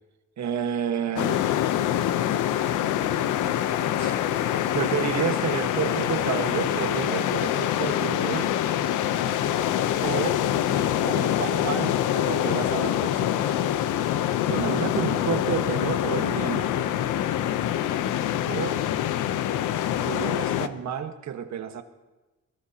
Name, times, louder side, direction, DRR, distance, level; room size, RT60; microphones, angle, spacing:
voice 1, 0.4-1.4 4.0-4.1 4.7-8.5 10.0-10.4 11.0-13.6 14.5-16.7 18.4-18.8 20.0-21.8, right 8 dB, 65° right, 7 dB, 1.5 m, -30 dB
sound 1, 1.2-20.7, left 11 dB, 85° left, 0.8 m, -25 dB
22.0 x 19.5 x 2.9 m, 1.1 s
cardioid pair, 90°, 30 cm